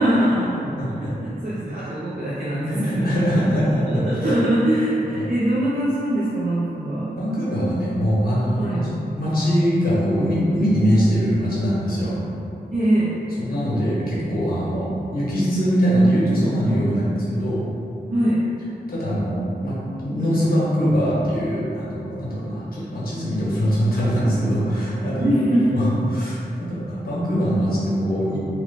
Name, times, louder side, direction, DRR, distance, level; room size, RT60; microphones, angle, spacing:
voice 1, 0.0-3.1 3.4-3.5 3.8-7.1 8.6-8.8 12.7-13.1 18.1-18.4 25.2-25.7, right 1 dB, 55° right, -10 dB, 0.7 m, -22 dB
voice 2, 0.6-1.1 1.7-1.9 2.7-4.3 5.1-5.3 7.2-8.8 9.2-12.1 13.4-17.6 18.9-19.8 20.0-28.4, equal, 60° left, -8 dB, 1.0 m, -22 dB
3.0 x 2.4 x 3.7 m, 2.7 s
wide cardioid pair, 80°, 17 cm